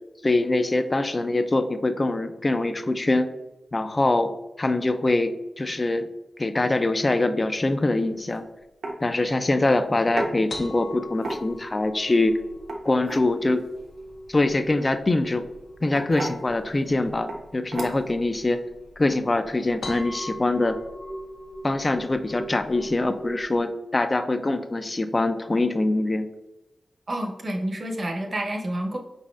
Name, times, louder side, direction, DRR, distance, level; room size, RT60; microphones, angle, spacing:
voice 1, 0.2-3.3 3.7-4.3 4.6-6.1 6.4-8.4 9.0-12.4 12.8-13.6 14.3-15.4 15.8-18.6 19.0-20.8 21.6-26.3, left 2 dB, 30° left, 9 dB, 0.4 m, -23 dB
sound 1, 8.1-8.3 8.8-9.0 10.2-10.3 11.1-11.7 12.6-13.3 14.9-15.2 15.9-16.4 17.3-17.4 17.7-18.2, right 2 dB, 75° right, 0.9 m, -32 dB
sound 2, 10.5-23.6, equal, 75° left, 0.7 m, -40 dB
voice 2, 27.1-29.0, right 1 dB, 45° right, 2 dB, 0.8 m, -29 dB
5.3 x 4.0 x 2.4 m, 0.99 s
wide cardioid pair, 95°, 0 cm